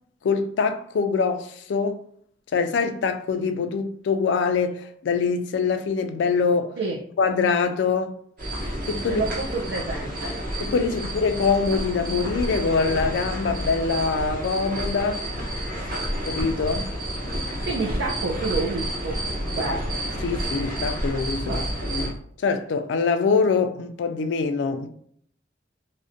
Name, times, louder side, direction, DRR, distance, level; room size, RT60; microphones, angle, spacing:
voice 1, 0.2-2.0 2.5-6.7 7.2-8.2 8.9-9.2 10.6-15.2 16.3-16.9 20.2-24.9, left 5 dB, 75° left, 0.3 m, -24 dB
sound 1, 8.4-22.1, equal, 50° right, 0.8 m, -30 dB
voice 2, 9.1-10.4 11.0-11.1 17.7-19.8 21.5-21.7, right 3 dB, 75° right, 0.4 m, -29 dB
2.4 x 2.1 x 2.5 m
head